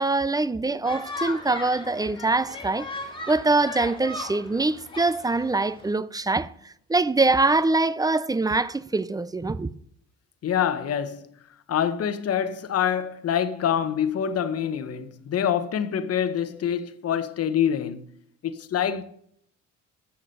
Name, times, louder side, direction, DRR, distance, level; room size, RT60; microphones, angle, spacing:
voice 1, 0.0-2.9 3.3-9.7, right 3 dB, 15° right, 0.4 m, -24 dB
sound 1, 0.8-5.9, left 2 dB, 15° left, 2.3 m, -37 dB
voice 2, 10.4-11.3 11.7-18.0 18.4-19.0, left 9 dB, 55° left, 0.9 m, -26 dB
8.1 x 6.6 x 6.4 m
cardioid pair, 90°, 30 cm